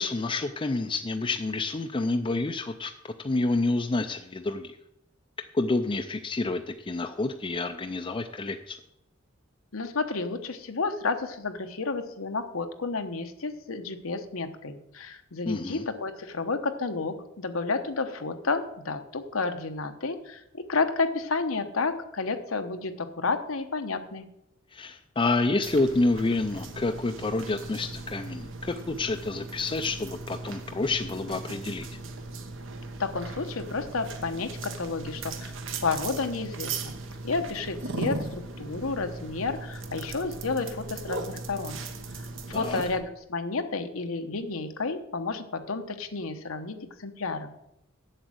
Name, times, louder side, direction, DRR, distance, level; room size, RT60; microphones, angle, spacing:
voice 1, 0.0-2.9 3.2-4.8 5.5-8.8 15.5-15.8 24.7-31.9 42.5-42.8, left 2 dB, 25° left, 5 dB, 0.5 m, -28 dB
voice 2, 9.7-24.2 33.0-35.5 35.8-36.9 37.2-41.8 42.2-47.5, left 4 dB, 85° left, 7 dB, 1.0 m, -31 dB
sound 1, 25.6-43.0, right 3 dB, 65° right, 1.1 m, -38 dB
7.9 x 7.3 x 7.9 m, 0.83 s
head